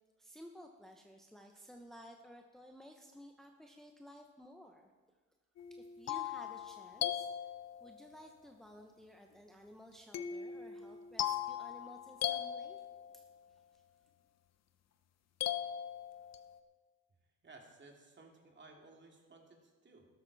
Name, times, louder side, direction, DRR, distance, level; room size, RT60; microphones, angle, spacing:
voice 1, 0.2-4.9 5.7-7.3 7.8-12.8 13.1-13.3 13.7-13.8, equal, ahead, 3 dB, 1.0 m, -55 dB
sound 1, 5.6-8.1 10.1-13.3 15.4-16.6, left 10 dB, 60° left, 0.9 m, -39 dB
voice 2, 17.4-20.1, right 3 dB, 35° right, 1 dB, 2.6 m, -58 dB
13.5 x 12.0 x 4.1 m, 1.4 s
cardioid pair, 90°, 30 cm